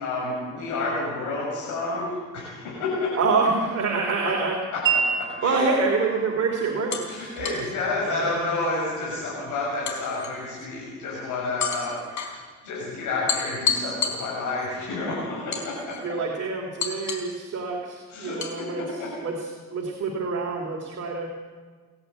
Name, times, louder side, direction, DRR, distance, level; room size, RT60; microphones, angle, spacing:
voice 1, 0.0-3.2 4.7-4.8 5.2-5.7 7.1-12.0 12.6-16.0 18.1-18.4 18.8-19.1, left 2 dB, 90° left, -5 dB, 6.6 m, -30 dB
voice 2, 3.2-4.6 5.4-7.4 7.9-8.6 16.0-21.3, right 4 dB, 55° right, 0 dB, 3.1 m, -27 dB
Wind chime, 4.9-10.9, right 6 dB, 70° right, 2.7 m, -33 dB
sound 1, 5.6-5.8 6.9-7.7 9.9-10.7 11.6-12.3 13.3-14.7 15.5-16.2 16.8-17.4 18.4-18.6, left 6 dB, 70° left, 4.2 m, -30 dB
29.5 x 11.0 x 8.1 m, 1.5 s
cardioid pair, 90°, 30 cm